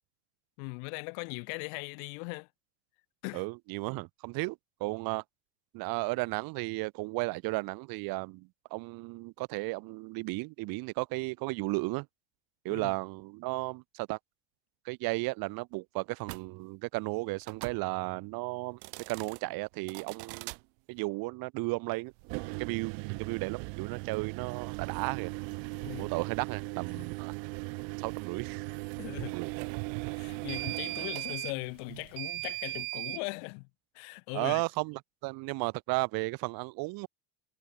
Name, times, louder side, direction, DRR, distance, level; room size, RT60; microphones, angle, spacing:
voice 1, 0.6-2.5 3.2-3.4 12.7-12.9 25.8-26.1 26.9-27.1 29.0-29.4 30.2-33.7 33.9-34.6, left 40 dB or more, 75° left, 0.9 m, -39 dB
voice 2, 3.3-5.2 5.7-12.1 12.6-14.2 14.8-18.8 19.1-20.5 20.9-22.1 22.6-25.3 26.0-27.3 28.0-28.7 29.2-29.5 34.3-37.1, right 25 dB, 50° right, 1.0 m, -34 dB
sound 1, 16.2-16.4 17.4-17.8 18.7-19.4 19.9-20.6 22.2-33.2, right 40 dB or more, 75° right, 1.2 m, -38 dB
cardioid pair, 175°, 46 cm